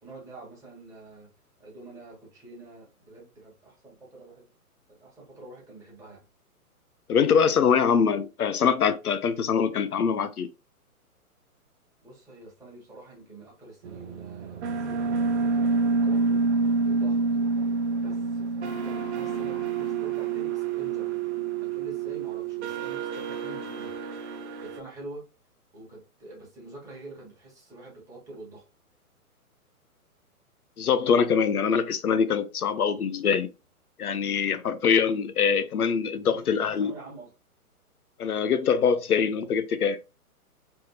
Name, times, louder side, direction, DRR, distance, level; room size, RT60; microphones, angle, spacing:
voice 1, 0.0-1.3 1.6-4.5 5.0-6.2 12.0-16.4 16.8-17.2 18.0-21.2 21.6-24.0 24.6-25.3 25.7-28.6 36.2-37.3, right 2 dB, 5° right, 1.5 m, -46 dB
voice 2, 7.1-10.5 30.8-33.5 34.0-36.9 38.2-40.0, left 6 dB, 75° left, 0.6 m, -23 dB
sound 1, 13.8-24.8, right 4 dB, 50° right, 0.8 m, -28 dB
4.2 x 3.5 x 2.8 m
figure-of-eight pair, 125°, 45 cm